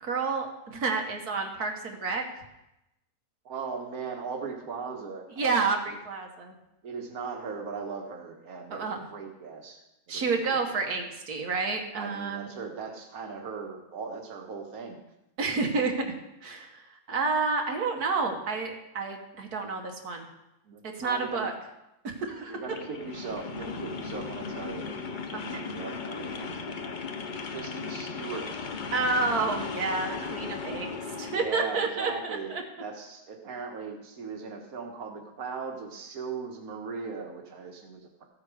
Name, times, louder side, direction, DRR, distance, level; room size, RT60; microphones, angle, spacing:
voice 1, 0.0-2.2 5.4-6.6 8.7-9.1 10.1-12.5 15.4-16.1 16.4-20.3 20.8-21.5 22.0-22.6 25.3-25.7 28.9-32.6, right 4 dB, 90° right, 2 dB, 2.0 m, -30 dB
voice 2, 3.5-6.0 6.8-9.8 10.1-10.9 11.9-15.0 20.7-21.5 22.5-26.8 27.5-28.7 31.2-32.5 32.8-38.2, right 5 dB, 70° right, 2 dB, 1.8 m, -39 dB
big bike mix, 22.6-31.5, left 5 dB, 40° left, 0.8 m, -36 dB
14.5 x 8.2 x 4.9 m, 0.90 s
omnidirectional pair, 1.6 m